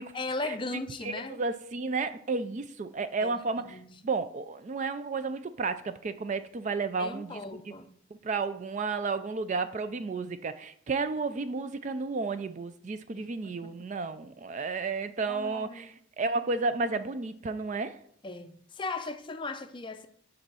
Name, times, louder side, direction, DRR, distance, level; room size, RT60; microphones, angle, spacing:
voice 1, 0.1-1.4 3.2-4.0 7.0-7.9 13.1-13.7 15.3-15.9 18.2-20.1, left 3 dB, 25° left, 9 dB, 0.5 m, -38 dB
voice 2, 1.0-7.7 8.2-18.0, right 4 dB, 35° right, 12 dB, 0.3 m, -32 dB
7.7 x 4.1 x 6.1 m, 0.64 s
head